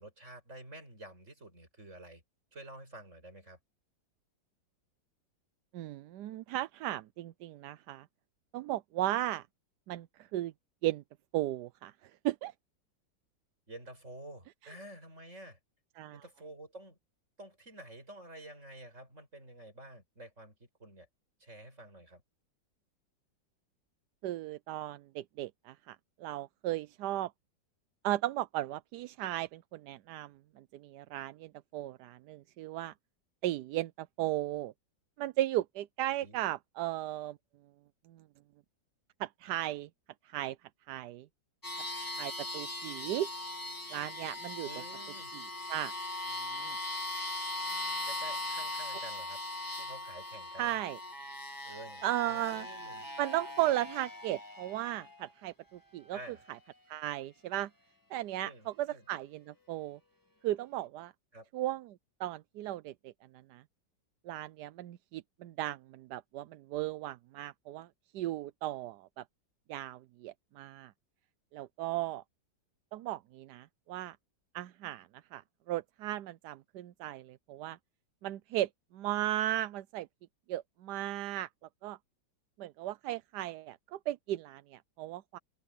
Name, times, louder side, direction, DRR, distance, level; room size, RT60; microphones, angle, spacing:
voice 1, 0.0-2.2 2.5-3.6 13.7-15.6 16.1-17.0 17.4-21.1 21.4-22.2 36.2-36.4 44.6-45.3 48.1-49.4 49.8-50.8 51.6-53.1 56.1-56.4 58.4-59.0 61.3-61.5, right 1 dB, 40° right, 8.3 m, -50 dB
voice 2, 5.7-8.1 8.5-9.5 9.9-10.5 10.8-11.0 11.3-12.5 16.0-16.2 24.2-27.3 28.0-32.9 33.4-34.7 35.2-37.4 38.1-38.2 39.2-39.9 40.2-40.6 40.9-41.3 42.2-43.3 43.9-44.7 45.3-45.4 45.7-45.9 46.5-46.8 50.6-51.0 52.0-52.7 53.2-56.2 56.9-57.7 58.1-60.0 60.4-61.1 61.5-63.1 63.5-63.6 64.2-67.9 68.1-69.2 69.7-70.9 71.5-72.2 72.9-74.2 74.5-77.8 78.2-80.1 80.5-81.5 81.8-82.0 82.6-85.4, right 14 dB, 70° right, 1.1 m, -36 dB
sound 1, 41.6-55.3, left 2 dB, 10° left, 1.6 m, -40 dB
omnidirectional pair, 2.0 m